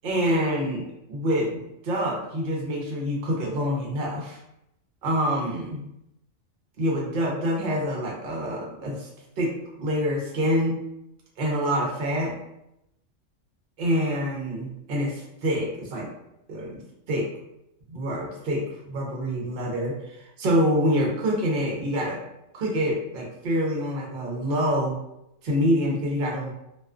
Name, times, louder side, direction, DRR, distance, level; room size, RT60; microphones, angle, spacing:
voice 1, 0.0-4.4 5.0-5.9 6.8-9.1 9.4-10.8 11.4-12.4 13.8-16.1 16.5-17.3 17.9-22.2 22.5-25.0 25.4-26.5, equal, 55° right, -2 dB, 0.7 m, -26 dB
2.4 x 2.3 x 2.3 m, 0.84 s
omnidirectional pair, 1.3 m